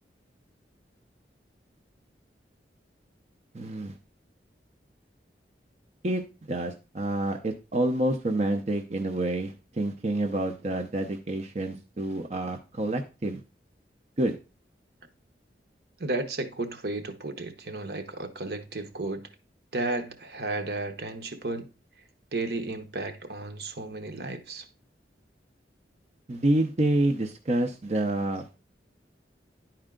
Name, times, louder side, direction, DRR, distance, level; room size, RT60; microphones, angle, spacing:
voice 1, 3.5-3.9 6.0-6.2 6.5-13.4 14.2-14.4 26.3-28.5, right 1 dB, 40° right, 0.7 m, -28 dB
voice 2, 16.0-19.3 19.7-21.7 22.3-24.7, right 2 dB, 65° right, 1.0 m, -33 dB
11.0 x 4.5 x 3.7 m
head